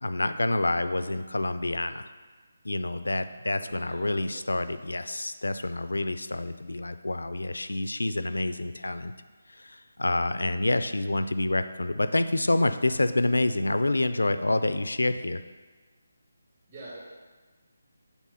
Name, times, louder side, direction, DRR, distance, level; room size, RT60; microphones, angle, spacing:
voice 1, 0.0-2.1 2.6-9.1 9.5-15.4, left 2 dB, 80° left, 11 dB, 0.4 m, -27 dB
voice 2, 3.6-4.6 16.7-17.0, right 2 dB, 30° right, -7 dB, 2.1 m, -46 dB
7.3 x 3.5 x 5.5 m, 1.3 s
figure-of-eight pair, 155°, 0 cm